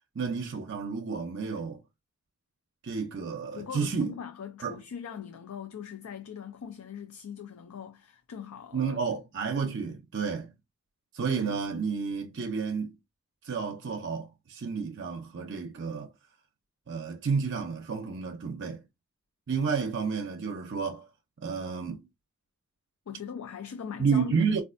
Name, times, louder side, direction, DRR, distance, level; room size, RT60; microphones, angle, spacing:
voice 1, 0.2-1.8 2.8-4.1 4.6-4.8 8.7-10.5 11.1-12.9 13.4-16.1 16.9-18.8 19.5-21.1 21.4-22.1 24.0-24.6, right 5 dB, 55° right, 0.5 m, -31 dB
voice 2, 3.5-9.0 23.1-24.6, left 7 dB, 80° left, 0.4 m, -41 dB
4.2 x 2.4 x 2.4 m
head